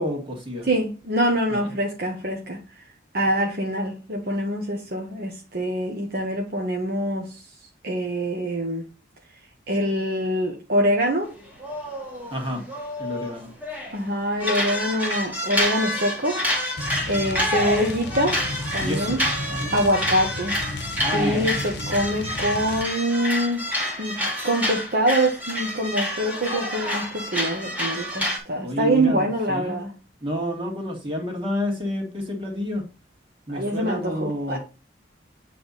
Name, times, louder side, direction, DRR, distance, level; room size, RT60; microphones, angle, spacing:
voice 1, 0.0-0.7 1.5-1.7 12.3-12.6 13.0-13.5 18.8-19.1 19.5-19.8 21.0-21.6 28.6-29.8 30.2-32.8 33.5-34.6, equal, 30° right, 1.9 m, -29 dB
voice 2, 0.7-2.6 3.1-7.3 7.8-8.8 9.7-11.3 13.9-16.4 17.1-18.4 18.7-19.2 19.7-20.6 21.1-23.6 24.0-29.9 33.5-34.6, equal, 55° right, 1.0 m, -24 dB
sound 1, 11.4-14.0 14.4-28.4, equal, 10° right, 1.4 m, -28 dB
sound 2, 16.8-22.9, left 2 dB, 65° left, 0.9 m, -34 dB
8.0 x 3.4 x 4.1 m
head